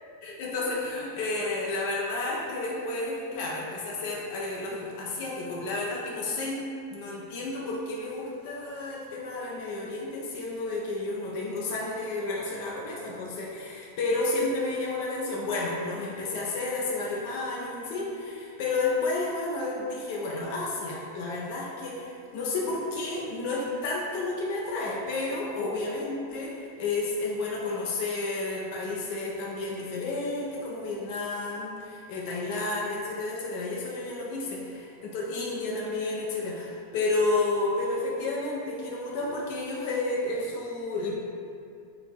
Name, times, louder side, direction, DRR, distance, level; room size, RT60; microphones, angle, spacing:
voice 1, 0.2-6.6 6.9-41.2, left 2 dB, 50° left, -4 dB, 0.7 m, -31 dB
3.9 x 2.9 x 4.5 m, 2.4 s
figure-of-eight pair, 90°, 0 cm